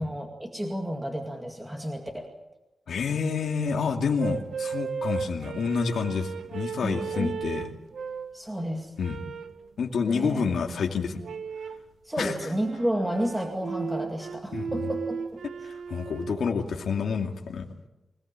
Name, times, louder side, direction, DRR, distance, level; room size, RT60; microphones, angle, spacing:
voice 1, 0.0-2.3 6.8-7.3 8.3-8.9 10.1-10.4 12.0-15.4, equal, 10° right, 1 dB, 2.2 m, -31 dB
voice 2, 2.9-7.7 9.0-9.2 9.8-11.2 12.2-12.4 14.5-14.7 15.6-17.7, left 5 dB, 85° left, 2 dB, 2.6 m, -28 dB
sound 1, 4.2-8.4 9.0-9.6 11.2-11.9 12.5-16.4, right 6 dB, 85° right, 1.4 m, -35 dB
25.5 x 18.5 x 8.9 m, 0.97 s
wide cardioid pair, 180°, 0 cm